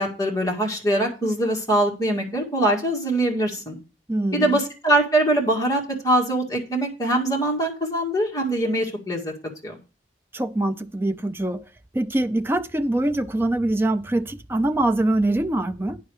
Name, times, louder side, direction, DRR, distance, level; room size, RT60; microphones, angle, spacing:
voice 1, 0.0-3.8 4.3-9.3 9.6-9.8, right 1 dB, 20° left, 1.9 m, -23 dB
voice 2, 4.1-4.6 10.3-11.7 11.9-16.0, right 1 dB, 15° right, 0.4 m, -24 dB
9.3 x 5.8 x 4.8 m
head